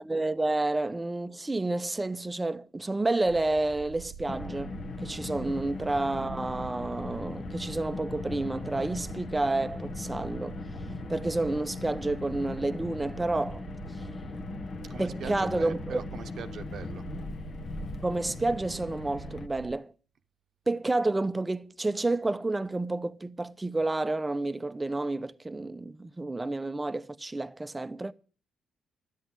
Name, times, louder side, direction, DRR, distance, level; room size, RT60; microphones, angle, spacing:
voice 1, 0.0-10.6 11.1-13.6 15.0-16.0 18.0-19.9 20.7-28.1, right 2 dB, 15° right, 0.7 m, -30 dB
sound 1, 3.3-19.8, right 9 dB, 80° right, 0.6 m, -46 dB
Car, 4.3-19.5, left 3 dB, 50° left, 1.2 m, -39 dB
voice 2, 14.8-17.0, right 7 dB, 60° right, 0.9 m, -42 dB
12.5 x 7.9 x 8.0 m
cardioid pair, 90°, 0 cm